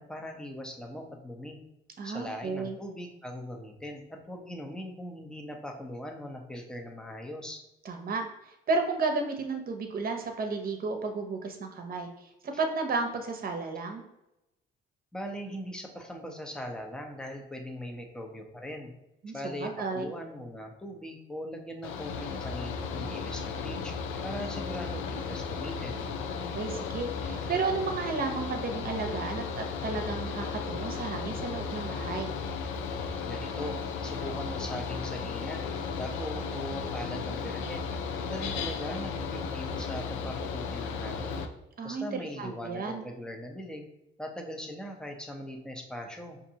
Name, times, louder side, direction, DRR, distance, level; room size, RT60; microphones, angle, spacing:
voice 1, 0.0-1.6 2.0-7.6 15.1-18.9 19.3-23.9 24.2-26.1 33.2-33.8 34.0-35.7 36.0-37.9 38.2-41.5 41.8-43.9 44.2-46.4, equal, 5° left, 2 dB, 0.7 m, -40 dB
voice 2, 2.0-2.8 7.8-8.3 8.7-14.0 19.2-20.1 26.4-32.3 41.8-43.0, right 4 dB, 50° right, 4 dB, 0.8 m, -33 dB
Mechanical fan, 21.8-41.5, left 5 dB, 90° left, 0.4 m, -35 dB
5.1 x 2.6 x 2.8 m, 0.89 s
cardioid pair, 90°, 20 cm